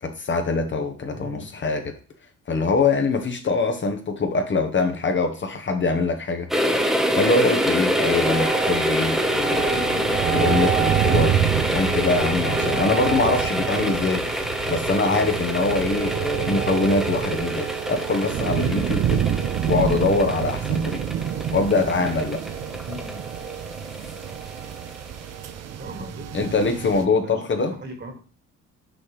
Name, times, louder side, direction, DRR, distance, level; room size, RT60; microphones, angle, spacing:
voice 1, 0.0-1.9 2.5-6.5 7.1-9.7 10.3-11.3 11.7-19.2 19.7-21.0 21.5-22.4 26.3-27.7, left 4 dB, 40° left, 5 dB, 1.0 m, -23 dB
voice 2, 1.1-1.4 9.7-10.0 22.8-23.2 25.8-27.4 27.7-28.2, equal, 35° right, 4 dB, 1.9 m, -38 dB
sound 1, 6.5-25.1 25.4-25.5, equal, ahead, 0.9 m, -26 dB
sound 2, 8.0-27.1, right 10 dB, 60° right, 0.6 m, -27 dB
6.2 x 4.8 x 3.2 m, 0.37 s
cardioid pair, 90°, 30 cm